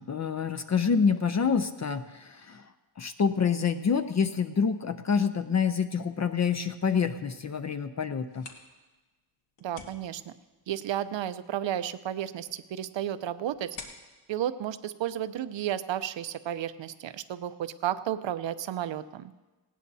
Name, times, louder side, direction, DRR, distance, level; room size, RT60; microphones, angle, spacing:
voice 1, 0.0-2.6 3.0-8.5, left 6 dB, 40° left, 9 dB, 0.5 m, -27 dB
sound 1, 8.1-15.7, left 4 dB, 85° left, 1.7 m, -52 dB
voice 2, 9.6-10.3 10.7-13.8 14.3-19.3, right 11 dB, 90° right, 12 dB, 0.7 m, -32 dB
19.0 x 17.0 x 2.7 m, 1.2 s
wide cardioid pair, 175°, 44 cm